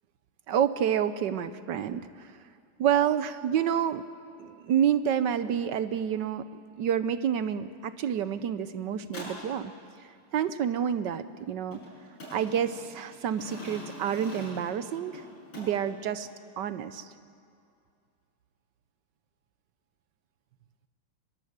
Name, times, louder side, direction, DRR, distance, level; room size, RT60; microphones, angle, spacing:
voice 1, 0.5-2.3 2.8-4.0 4.4-6.5 6.8-9.7 10.3-11.8 12.3-15.2 15.6-16.3 16.6-17.1, right 9 dB, 65° right, 12 dB, 1.2 m, -28 dB
sound 1, 9.0-9.5 11.7-15.9, equal, 90° left, 7.9 m, -44 dB
23.5 x 21.5 x 8.1 m, 2.4 s
omnidirectional pair, 2.4 m